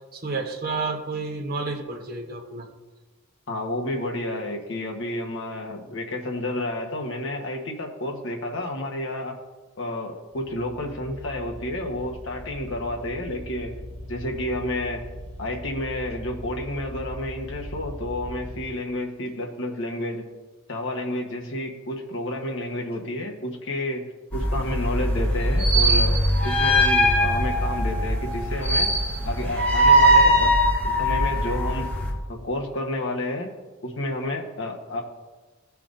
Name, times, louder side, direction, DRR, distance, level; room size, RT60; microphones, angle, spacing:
voice 1, 0.1-2.7, right 3 dB, 45° right, 0 dB, 0.9 m, -30 dB
voice 2, 3.5-9.4 9.8-13.7 14.1-15.0 15.4-20.3 20.7-26.2 26.4-28.9 29.2-30.5 30.8-31.9 32.3-33.5 33.8-35.0, left 1 dB, 65° left, 1 dB, 1.1 m, -30 dB
sound 1, 10.3-18.6, left 1 dB, 25° right, 1.5 m, -39 dB
sound 2, 24.3-32.1, equal, 10° left, 1.6 m, -20 dB
15.5 x 5.8 x 2.5 m, 1.3 s
head